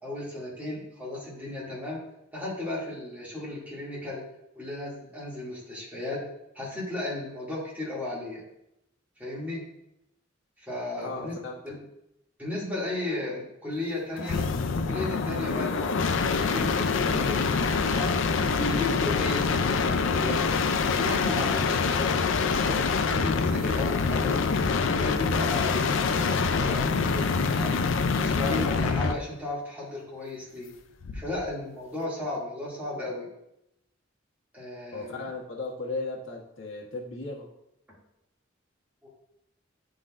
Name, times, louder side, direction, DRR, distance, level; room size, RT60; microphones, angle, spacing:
voice 1, 0.0-2.0 2.3-4.2 4.5-6.2 6.5-8.4 9.2-9.6 10.7-11.4 11.6-11.8 12.4-14.4 14.8-18.2 18.5-20.5 20.9-22.8 23.1-24.5 24.9-27.8 28.1-30.7 31.1-33.3 34.5-35.3 39.0-39.1, left 2 dB, 10° right, -7 dB, 2.3 m, -35 dB
voice 2, 11.0-11.5 34.9-37.5, left 3 dB, 90° left, -2 dB, 1.3 m, -36 dB
sound 1, 14.2-29.2 31.0-31.5, left 4 dB, 70° left, 0.4 m, -25 dB
10.5 x 3.9 x 2.5 m, 0.82 s
head